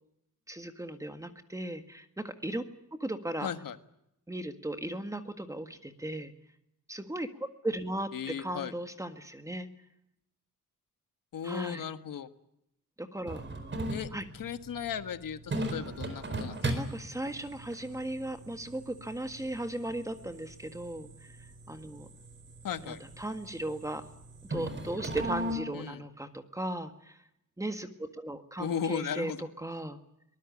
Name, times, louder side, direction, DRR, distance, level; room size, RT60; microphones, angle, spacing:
voice 1, 0.5-2.6 3.0-3.5 4.3-6.3 6.9-8.1 8.4-9.7 11.4-11.8 13.0-13.4 14.1-14.2 16.6-22.1 22.8-24.0 24.5-27.2 27.6-30.0, right 1 dB, 10° right, 8 dB, 1.7 m, -37 dB
voice 2, 3.4-3.8 8.1-8.7 11.3-12.3 13.9-16.6 22.6-23.0 25.7-26.0 28.6-29.4, left 8 dB, 85° left, 10 dB, 1.6 m, -36 dB
sound 1, 13.3-25.5, right 1 dB, 35° right, 4.4 m, -39 dB
23.5 x 20.0 x 8.5 m, 0.81 s
wide cardioid pair, 175°, 32 cm